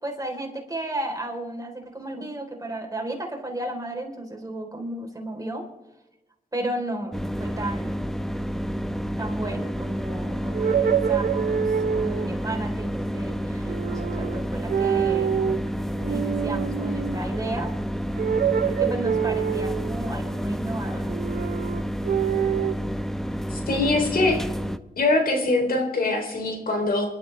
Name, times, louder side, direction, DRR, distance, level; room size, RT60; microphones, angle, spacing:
voice 1, 0.0-5.6 6.5-8.0 9.2-15.4 16.1-17.7 18.7-21.0, right 1 dB, 20° right, 1 dB, 4.0 m, -33 dB
sound 1, 7.1-24.8, equal, ahead, 0.9 m, -30 dB
sound 2, 10.5-12.4 13.7-14.4 14.7-15.6 16.0-17.2 18.2-20.0 21.1-22.8, right 8 dB, 70° right, 0.7 m, -26 dB
voice 2, 23.5-24.4 25.0-27.1, left 2 dB, 70° left, 2 dB, 3.6 m, -23 dB
24.5 x 12.5 x 3.4 m, 1.0 s
cardioid pair, 60°, 16 cm